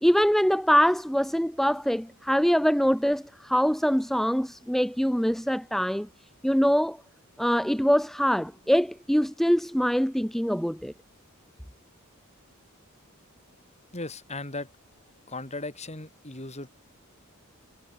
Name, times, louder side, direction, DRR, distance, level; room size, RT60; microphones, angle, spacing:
voice 1, 0.0-6.1 6.4-7.0 7.4-10.9, equal, ahead, 1.0 m, -24 dB
voice 2, 13.9-14.7 15.3-16.7, left 2 dB, 30° left, 7.4 m, -37 dB
head